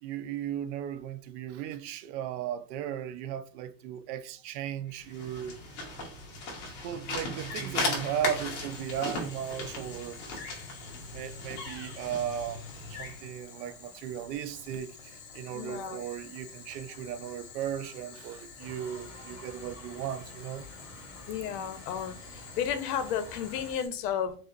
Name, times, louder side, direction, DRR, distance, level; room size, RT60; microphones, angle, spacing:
voice 1, 0.0-5.6 6.8-10.2 11.1-12.6 12.9-20.7, right 10 dB, 85° right, 0.6 m, -36 dB
sound 1, 5.0-13.2, left 2 dB, 40° left, 1.1 m, -37 dB
Boiling, 8.7-23.9, left 5 dB, 60° left, 1.3 m, -49 dB
voice 2, 15.5-16.0 21.3-22.1 22.6-24.4, left 8 dB, 85° left, 0.7 m, -32 dB
sound 2, 18.6-23.7, equal, 5° right, 1.0 m, -49 dB
5.0 x 2.0 x 2.5 m
supercardioid pair, 165°, 47 cm